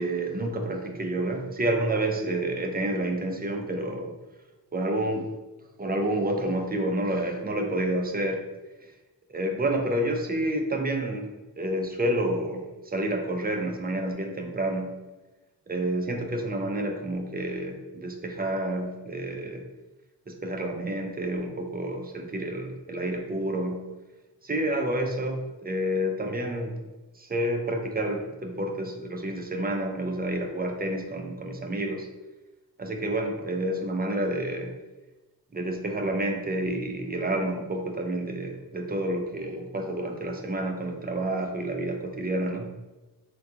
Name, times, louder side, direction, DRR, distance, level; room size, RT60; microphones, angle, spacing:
voice 1, 0.0-4.1 4.7-5.3 5.8-8.4 9.3-11.3 11.6-15.0 15.7-19.7 20.3-23.9 24.4-26.8 27.2-32.1 32.8-34.7 35.5-42.7, right 1 dB, 25° right, 3 dB, 0.4 m, -29 dB
3.5 x 2.2 x 2.8 m, 1.1 s
wide cardioid pair, 60°, 41 cm